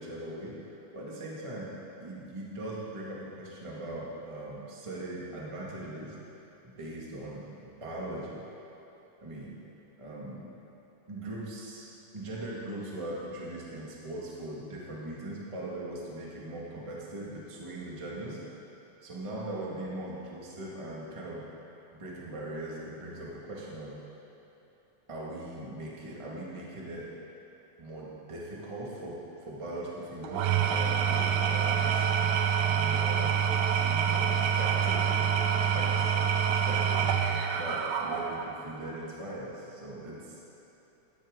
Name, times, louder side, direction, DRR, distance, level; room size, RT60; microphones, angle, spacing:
voice 1, 0.0-1.7 2.0-6.2 6.6-8.4 9.2-9.6 10.0-10.5 11.1-11.9 12.1-18.4 19.0-21.4 21.9-23.9 25.1-27.1 27.8-32.0 32.7-33.3 33.7-36.1 36.5-37.1 37.5-40.4, right 1 dB, 15° right, -5 dB, 1.2 m, -40 dB
Engine / Tools, 30.2-38.6, right 7 dB, 75° right, 2.1 m, -26 dB
14.5 x 12.0 x 3.8 m, 3.0 s
omnidirectional pair, 3.6 m